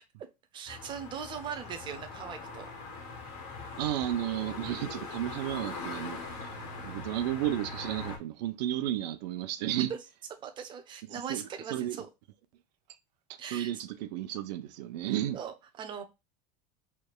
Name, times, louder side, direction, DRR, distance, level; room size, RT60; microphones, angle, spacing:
voice 1, 0.5-2.7 10.4-12.1 13.4-13.7 15.3-16.0, right 7 dB, 25° right, 0.7 m, -40 dB
sound 1, 0.7-8.2, left 3 dB, 60° left, 1.5 m, -41 dB
voice 2, 3.8-6.6 6.8-9.9 11.1-12.0 13.5-15.4, right 12 dB, 85° right, 0.7 m, -33 dB
4.7 x 3.4 x 2.4 m
supercardioid pair, 155°, 21 cm